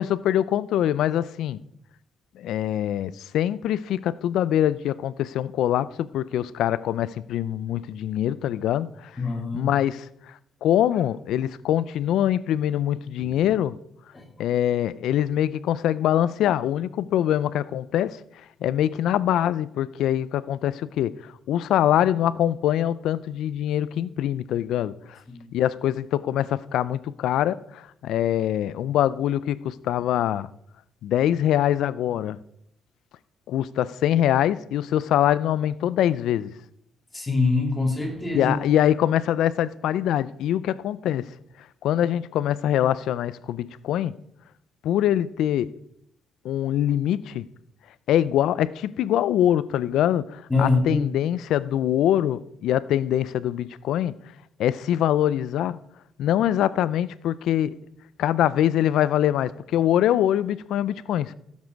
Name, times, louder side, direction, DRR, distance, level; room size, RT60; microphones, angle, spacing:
voice 1, 0.0-1.6 2.4-9.1 9.5-10.1 10.6-13.8 14.4-18.2 18.6-21.1 21.5-25.2 25.5-30.5 31.0-32.4 33.5-36.5 38.3-41.3 41.8-44.2 44.8-45.7 46.4-47.5 48.1-54.1 54.6-55.8 56.2-57.7 58.2-61.3, left 11 dB, 80° left, 0.5 m, -23 dB
voice 2, 9.2-9.7 14.1-14.3 25.3-25.5 37.1-38.5 50.5-51.0, left 3 dB, 15° left, 3.0 m, -24 dB
16.0 x 7.4 x 4.6 m
cardioid pair, 90°, 0 cm